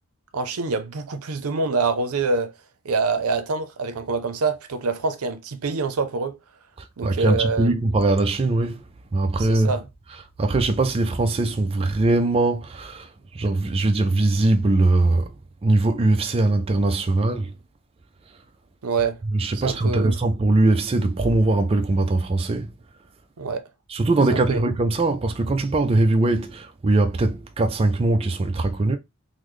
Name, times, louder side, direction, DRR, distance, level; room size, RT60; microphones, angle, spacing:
voice 1, 0.3-2.5 2.8-6.4 7.0-7.7 9.4-9.8 18.8-19.2 19.5-20.1 23.4-23.7 24.3-24.6, right 4 dB, 85° right, 0.6 m, -25 dB
voice 2, 6.8-8.8 9.1-9.8 10.4-15.3 15.6-17.5 19.3-22.7 23.9-29.0, right 2 dB, 25° right, 0.4 m, -21 dB
3.8 x 2.1 x 3.1 m
head